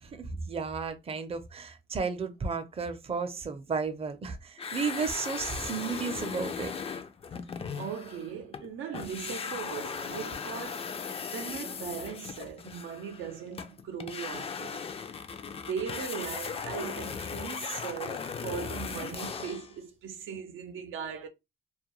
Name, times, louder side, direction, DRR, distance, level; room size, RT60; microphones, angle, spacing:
voice 1, 0.0-6.7, right 5 dB, 30° right, 0.5 m, -33 dB
sound 1, 4.6-8.7 8.9-19.7, left 6 dB, 30° left, 0.4 m, -38 dB
voice 2, 7.7-11.0 11.3-14.8 15.5-21.3, right 7 dB, 80° right, 0.6 m, -39 dB
2.3 x 2.2 x 3.0 m
cardioid pair, 90°, 20 cm